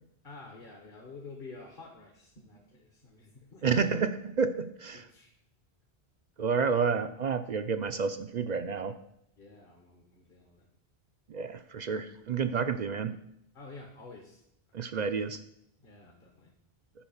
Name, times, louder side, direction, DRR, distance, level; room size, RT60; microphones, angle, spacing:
voice 1, 0.2-3.9 5.1-5.3 9.4-10.7 13.5-14.4 15.8-16.5, left 3 dB, 55° left, 1 dB, 1.5 m, -49 dB
voice 2, 3.6-5.0 6.4-9.0 11.3-13.2 14.7-15.4, right 5 dB, 55° right, 10 dB, 0.5 m, -30 dB
10.0 x 4.9 x 7.1 m, 0.77 s
omnidirectional pair, 1.1 m